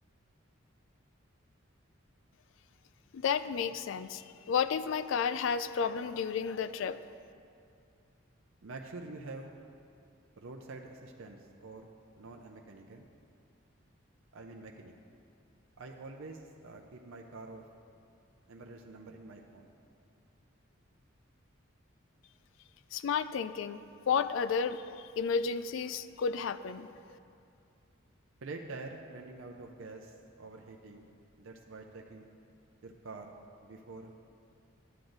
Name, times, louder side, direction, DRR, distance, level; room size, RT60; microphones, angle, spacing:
voice 1, 3.1-7.0 22.9-27.2, left 6 dB, 65° left, 13 dB, 0.3 m, -32 dB
voice 2, 8.6-9.5 10.4-11.9 12.2-13.1 14.3-14.9 15.8-17.6 18.5-19.7 28.4-31.1 31.4-32.3 32.8-33.3 33.6-34.1, right 3 dB, 75° right, 2 dB, 0.6 m, -46 dB
10.0 x 7.8 x 3.9 m, 2.4 s
head